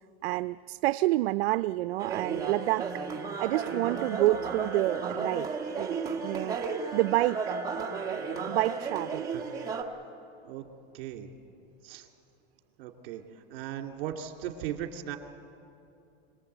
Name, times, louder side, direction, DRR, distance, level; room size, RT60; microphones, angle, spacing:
voice 1, 0.2-6.6 6.9-7.6 8.5-9.3, right 17 dB, 80° right, 12 dB, 0.5 m, -29 dB
sound 1, 2.0-9.8, right 5 dB, 10° right, 1.4 m, -34 dB
voice 2, 10.9-11.3 11.8-12.1 12.8-13.2 13.5-15.2, right 10 dB, 55° right, 4 dB, 2.5 m, -37 dB
26.0 x 19.5 x 8.0 m, 2.7 s
supercardioid pair, 160°, 31 cm